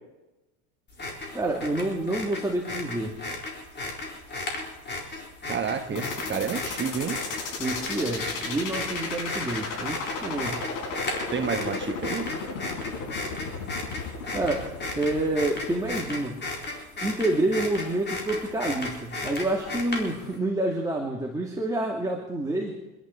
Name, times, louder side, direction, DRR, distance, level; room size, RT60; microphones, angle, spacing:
sound 1, 0.9-20.3, left 2 dB, 25° left, 4.3 m, -35 dB
voice 1, 1.3-3.2 5.9-6.0 7.6-10.6 14.3-14.7 15.0-16.4 17.0-22.8, right 2 dB, 10° right, -1 dB, 2.6 m, -28 dB
voice 2, 5.5-7.2 11.3-12.3, right 6 dB, 25° right, 6 dB, 1.4 m, -30 dB
sound 2, 6.0-16.0, left 4 dB, 70° left, 6.5 m, -34 dB
26.5 x 11.5 x 4.7 m, 1.0 s
supercardioid pair, 115°, 44 cm